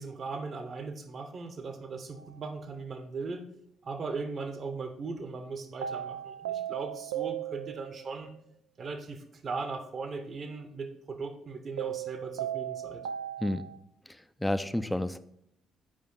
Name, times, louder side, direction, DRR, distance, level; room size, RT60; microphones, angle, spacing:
voice 1, 0.0-3.4 3.8-8.3 8.8-13.1, right 4 dB, 45° right, 7 dB, 1.0 m, -38 dB
sound 1, 2.2-2.3 5.8-8.1 11.8-13.8, right 11 dB, 75° right, 0.3 m, -36 dB
voice 2, 14.4-15.2, left 1 dB, 5° left, 12 dB, 0.5 m, -29 dB
8.9 x 5.0 x 3.9 m, 0.76 s
figure-of-eight pair, 45°, 0 cm